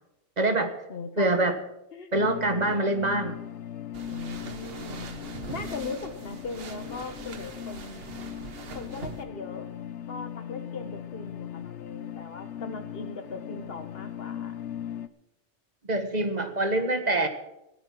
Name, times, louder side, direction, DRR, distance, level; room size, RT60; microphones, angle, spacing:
voice 1, 0.4-0.7 1.2-1.6 2.1-3.4 15.9-17.3, right 2 dB, 35° right, 8 dB, 1.4 m, -25 dB
voice 2, 0.9-1.3 1.9-2.1 4.1-5.0 5.5-8.4 8.7-9.7 10.1-14.6, left 4 dB, 55° left, 8 dB, 1.6 m, -39 dB
sound 1, 2.1-15.1, left 10 dB, 75° left, 1.0 m, -39 dB
sound 2, 3.9-9.2, right 5 dB, 55° right, 1.3 m, -42 dB
14.5 x 9.0 x 7.5 m, 0.89 s
omnidirectional pair, 1.2 m